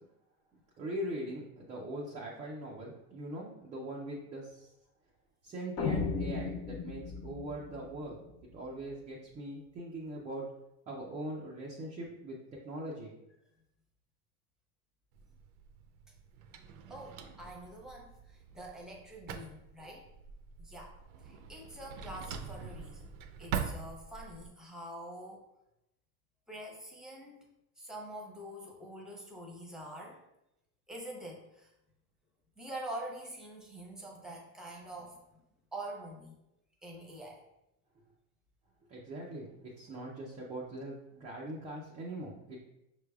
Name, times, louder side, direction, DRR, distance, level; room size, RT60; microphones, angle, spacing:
voice 1, 0.8-4.7 5.4-8.2 8.5-10.4 10.9-12.4 12.6-13.1 38.9-42.6, right 1 dB, 20° right, -3 dB, 0.4 m, -41 dB
sound 1, 5.8-8.9, left 5 dB, 40° left, 0.4 m, -37 dB
Drawer open or close, 15.1-24.5, right 7 dB, 75° right, 0.6 m, -43 dB
voice 2, 16.9-20.0 20.6-21.0 21.2-23.1 23.4-25.4 26.5-27.4 27.8-30.2 30.9-31.7 32.6-35.2 35.7-36.4 36.8-37.4, right 1 dB, ahead, -1 dB, 0.8 m, -45 dB
6.0 x 3.3 x 2.3 m, 0.86 s
supercardioid pair, 135°, 44 cm